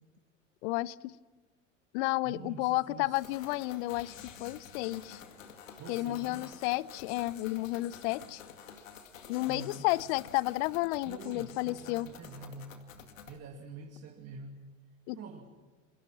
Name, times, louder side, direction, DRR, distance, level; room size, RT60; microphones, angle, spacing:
voice 1, 0.6-1.2 1.9-5.2 5.9-8.4 9.3-12.1 15.1-15.2, left 19 dB, 60° left, 21 dB, 0.8 m, -32 dB
voice 2, 2.2-3.3 5.8-6.5 9.5-9.9 11.0-12.9 13.3-14.7 15.1-15.6, right 4 dB, 40° right, 1 dB, 2.6 m, -46 dB
sound 1, 3.1-13.4, left 7 dB, 80° left, 2.2 m, -50 dB
28.0 x 22.5 x 6.1 m, 1.3 s
hypercardioid pair, 80°, 38 cm